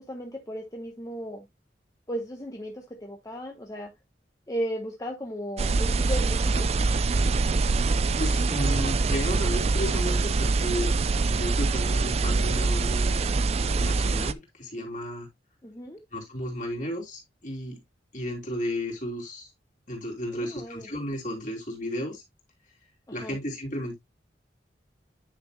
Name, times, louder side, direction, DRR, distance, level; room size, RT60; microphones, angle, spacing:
voice 1, 0.1-1.4 2.1-3.9 4.5-6.7 15.6-16.0 20.3-20.9 23.1-23.4, equal, 20° left, 1.0 m, -35 dB
sound 1, 5.6-14.3, right 3 dB, 35° right, 0.4 m, -24 dB
voice 2, 8.2-11.0 11.3-13.2 13.8-15.3 16.1-17.8 18.1-19.5 19.9-22.2 23.1-23.9, equal, 45° left, 3.2 m, -33 dB
10.5 x 6.0 x 2.2 m
head